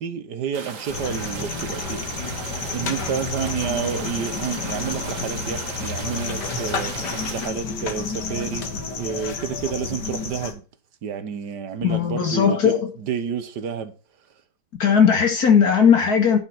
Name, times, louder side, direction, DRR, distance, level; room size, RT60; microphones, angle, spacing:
voice 1, 0.0-2.0 2.4-8.7 9.0-10.6 11.0-13.9, right 7 dB, 80° right, 1.7 m, -30 dB
sound 1, 0.5-7.5, right 5 dB, 50° right, 1.7 m, -36 dB
sound 2, 0.9-10.5, left 4 dB, 80° left, 2.1 m, -30 dB
voice 2, 11.8-12.9 14.8-16.4, left 7 dB, 60° left, 2.4 m, -17 dB
10.5 x 5.6 x 5.8 m
omnidirectional pair, 1.8 m